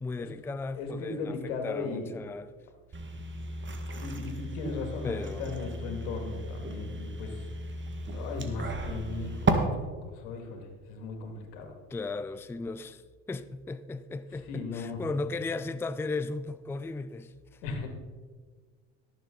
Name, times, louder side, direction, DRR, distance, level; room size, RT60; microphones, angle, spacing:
voice 1, 0.0-2.5 5.0-5.6 11.9-13.0 13.3-17.6, left 3 dB, 5° left, 0.4 m, -36 dB
voice 2, 0.7-2.1 3.9-5.1 5.4-7.5 8.1-11.7 14.3-15.0 17.6-17.9, left 4 dB, 85° left, 2.3 m, -37 dB
sound 1, 2.9-9.5, right 3 dB, 30° right, 1.7 m, -34 dB
17.5 x 7.4 x 3.9 m
supercardioid pair, 80°, 36 cm